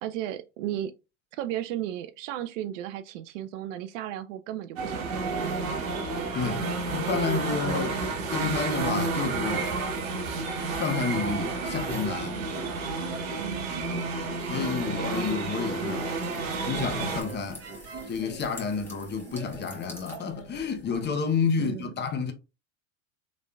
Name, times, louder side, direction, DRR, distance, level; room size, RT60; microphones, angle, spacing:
voice 1, 0.0-0.9 1.3-5.5 13.4-13.8 21.6-21.9, right 12 dB, 65° right, 0.5 m, -35 dB
sound 1, 4.8-17.2, right 3 dB, 80° right, 1.2 m, -30 dB
voice 2, 6.3-8.0 8.3-9.7 10.7-12.4 14.5-16.1 16.6-17.6 18.1-22.3, left 5 dB, 25° left, 0.8 m, -30 dB
sound 2, 11.4-18.4, right 5 dB, 40° right, 0.9 m, -42 dB
sound 3, 15.4-21.1, equal, 5° left, 1.3 m, -44 dB
3.9 x 3.1 x 2.3 m
hypercardioid pair, 85°, 40 cm